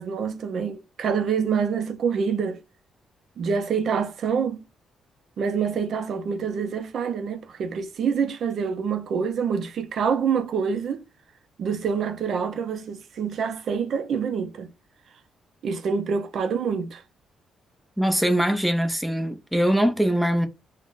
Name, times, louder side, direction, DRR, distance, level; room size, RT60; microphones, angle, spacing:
voice 1, 0.0-2.6 3.4-4.6 5.4-11.0 11.6-14.7 15.6-17.0, right 6 dB, 65° right, 0.5 m, -26 dB
voice 2, 18.0-20.5, equal, ahead, 0.6 m, -22 dB
3.5 x 2.1 x 2.4 m
cardioid pair, 90°, 0 cm